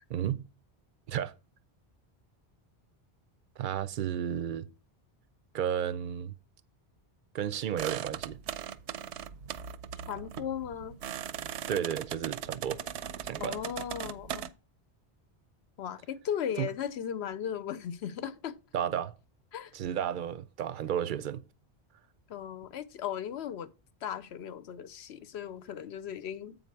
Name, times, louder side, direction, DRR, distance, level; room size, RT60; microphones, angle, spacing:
voice 1, 0.1-0.5 1.1-1.3 3.6-4.7 5.5-6.3 7.3-8.4 11.7-12.8 13.3-13.6 16.6-16.7 18.7-19.1 19.7-21.4, right 9 dB, 60° right, 0.6 m, -32 dB
sound 1, 7.8-14.5, right 9 dB, 85° right, 0.9 m, -39 dB
voice 2, 10.1-11.0 13.4-14.5 15.8-18.6 19.5-19.7 22.3-23.7 24.0-26.6, left 9 dB, 75° left, 0.9 m, -37 dB
7.9 x 5.3 x 4.5 m
omnidirectional pair, 1.1 m